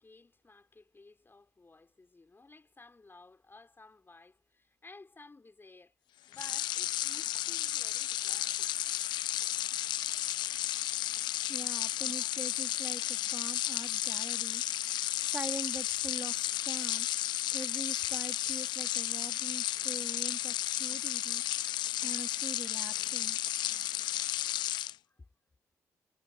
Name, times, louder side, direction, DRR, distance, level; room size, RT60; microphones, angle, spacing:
voice 1, 0.0-6.0 6.3-8.7 12.0-12.3 13.8-13.9 24.4-24.6 25.0-25.3, left 3 dB, 30° left, 4.2 m, -56 dB
sound 1, 6.3-24.9, left 13 dB, 70° left, 0.5 m, -33 dB
voice 2, 11.5-14.6 15.3-17.1 17.5-21.4 22.0-23.4, right 2 dB, 20° right, 3.4 m, -43 dB
hypercardioid pair, 45°, 8 cm